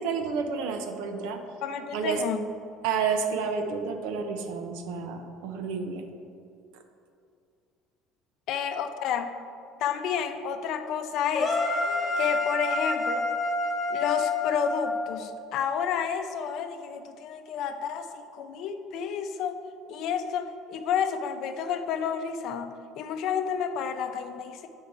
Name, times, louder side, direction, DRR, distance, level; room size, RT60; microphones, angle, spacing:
voice 1, 0.0-1.4 1.9-2.2 2.8-6.1, right 5 dB, 80° right, 6 dB, 0.7 m, -30 dB
voice 2, 1.6-2.4 8.5-9.3 9.8-11.6 12.2-13.3 13.9-19.6 19.9-24.7, left 7 dB, 65° left, 8 dB, 0.5 m, -30 dB
sound 1, 11.3-15.4, left 3 dB, 30° left, 1.4 m, -28 dB
7.0 x 4.6 x 4.8 m, 2.4 s
cardioid pair, 115°, 0 cm